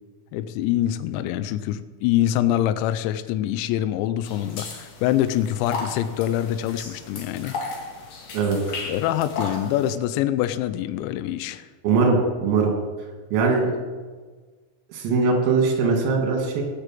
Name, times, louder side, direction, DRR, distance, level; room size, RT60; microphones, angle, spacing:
voice 1, 0.3-7.5 8.9-11.7, left 12 dB, 85° left, 12 dB, 2.6 m, -25 dB
sound 1, 4.2-9.9, left 4 dB, 50° left, 3.3 m, -35 dB
voice 2, 11.8-12.7 13.3-13.7 14.9-16.6, right 4 dB, 85° right, 2 dB, 5.2 m, -21 dB
19.0 x 6.8 x 7.6 m, 1.4 s
omnidirectional pair, 5.9 m